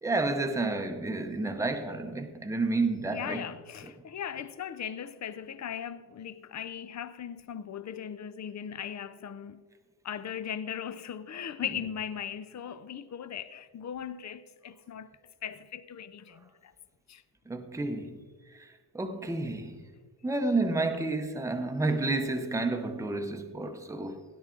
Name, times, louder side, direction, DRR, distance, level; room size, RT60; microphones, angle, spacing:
voice 1, 0.0-3.5 17.5-18.2 18.9-19.8 20.2-24.2, right 2 dB, 5° right, 0.7 m, -30 dB
voice 2, 3.1-9.6 10.0-15.1 15.4-16.7 17.1-17.2, left 8 dB, 45° left, 0.5 m, -38 dB
17.0 x 10.5 x 3.8 m
wide cardioid pair, 180°, 42 cm